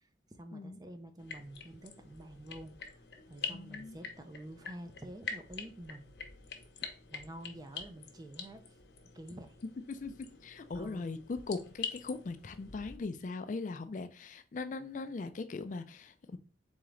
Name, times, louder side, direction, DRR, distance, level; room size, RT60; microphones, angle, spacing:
voice 1, 0.0-2.8 3.3-6.2 7.1-8.6 9.1-9.6 10.7-11.1, right 1 dB, 20° right, 0.4 m, -48 dB
sound 1, 1.2-13.0, left 6 dB, 65° left, 0.8 m, -46 dB
voice 2, 3.5-4.0 9.9-16.4, left 3 dB, 40° left, 0.3 m, -40 dB
3.9 x 3.6 x 3.2 m
head